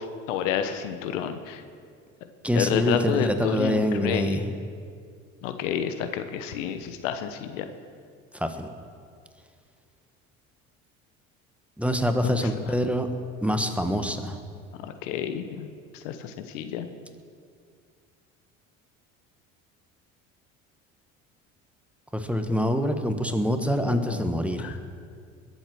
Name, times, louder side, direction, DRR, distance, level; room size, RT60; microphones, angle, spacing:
voice 1, 0.3-1.6 2.5-4.4 5.4-7.6 12.2-12.5 15.0-15.7 16.0-16.9 23.8-24.2 24.6-24.7, left 9 dB, 75° left, 9 dB, 1.1 m, -29 dB
voice 2, 2.4-4.5 8.3-8.7 11.8-13.1 13.4-14.4 22.1-24.7, equal, 5° right, 7 dB, 1.3 m, -25 dB
21.5 x 7.9 x 6.2 m, 2.2 s
hypercardioid pair, 70°, 38 cm